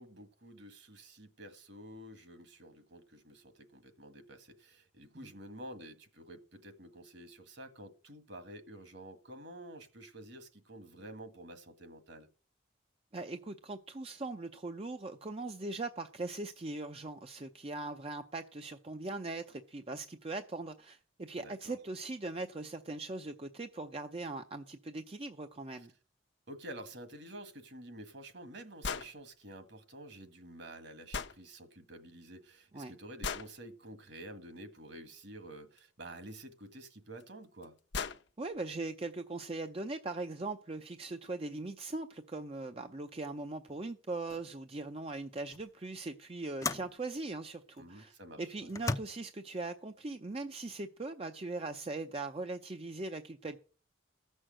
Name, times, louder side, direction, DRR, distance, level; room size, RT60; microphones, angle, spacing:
voice 1, 0.0-12.3 21.4-21.8 25.8-25.9 26.5-37.7 47.8-48.7, right 1 dB, 55° right, 1.7 m, -50 dB
voice 2, 13.1-25.9 32.7-32.9 38.4-53.6, right 2 dB, 30° right, 0.5 m, -40 dB
sound 1, 28.8-29.1 31.1-31.4 33.2-33.5 35.8-35.9 37.2-37.3 37.6-37.7 37.9-38.2, left 5 dB, 60° left, 0.8 m, -36 dB
sound 2, 43.7-43.8 44.3-44.5 45.5-45.7 46.6-47.0 47.8-47.9 48.7-49.0, left 3 dB, 15° left, 0.5 m, -36 dB
14.5 x 6.4 x 7.6 m
head